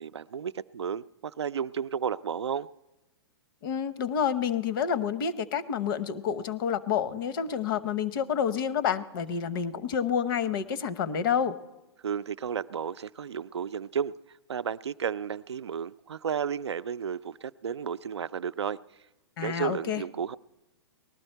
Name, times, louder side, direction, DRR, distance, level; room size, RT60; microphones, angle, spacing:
voice 1, 0.0-2.7 12.0-14.1 14.5-18.8 19.4-20.4, right 7 dB, 90° right, 14 dB, 0.4 m, -33 dB
voice 2, 3.6-11.6 19.4-20.0, left 7 dB, 55° left, 16 dB, 0.8 m, -29 dB
19.0 x 12.0 x 4.5 m, 1.0 s
hypercardioid pair, 120°, 14 cm